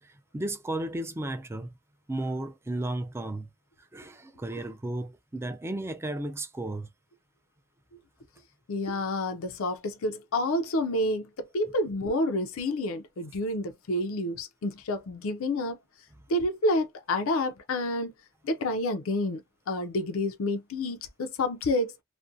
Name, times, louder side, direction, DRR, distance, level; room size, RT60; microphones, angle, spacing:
voice 1, 0.3-1.7 2.1-3.5 3.9-6.9, right 1 dB, 10° right, 0.4 m, -34 dB
voice 2, 8.7-15.8 16.3-18.1 18.4-19.4 19.7-21.9, left 1 dB, 90° left, 0.5 m, -29 dB
2.5 x 2.1 x 2.5 m
head